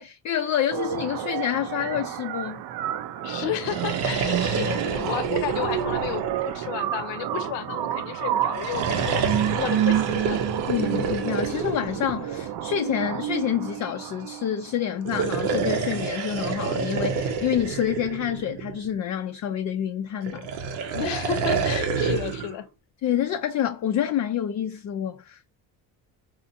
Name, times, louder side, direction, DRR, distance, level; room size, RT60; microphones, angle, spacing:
voice 1, 0.0-2.6 10.3-10.4 10.7-20.5 23.0-25.5, left 9 dB, 40° left, 0.4 m, -28 dB
sound 1, 0.7-14.7, right 11 dB, 55° right, 0.5 m, -29 dB
voice 2, 3.2-10.4 20.9-22.7, left 10 dB, 65° left, 0.8 m, -32 dB
sound 2, 3.5-7.1 8.4-12.8 14.9-18.9 20.2-22.5, right 5 dB, 80° right, 0.8 m, -28 dB
4.2 x 2.5 x 2.6 m
supercardioid pair, 70°, 46 cm